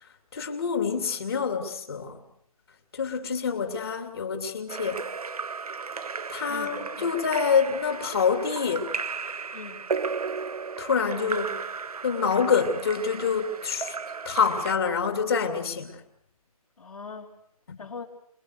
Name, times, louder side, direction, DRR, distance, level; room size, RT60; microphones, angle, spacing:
voice 1, 0.0-2.2 2.9-5.0 6.3-8.9 10.8-11.6 12.0-14.0 14.2-16.0 17.7-17.8, left 6 dB, 40° left, 6 dB, 2.9 m, -26 dB
Splash splatter / Drip / Trickle dribble, 4.7-14.8, right 5 dB, 75° right, 1.1 m, -35 dB
voice 2, 6.5-7.1 9.5-9.8 16.8-17.3 17.8-18.0, left 4 dB, 70° left, 2 dB, 4.4 m, -41 dB
27.5 x 21.5 x 6.5 m, 0.70 s
hypercardioid pair, 175°, 19 cm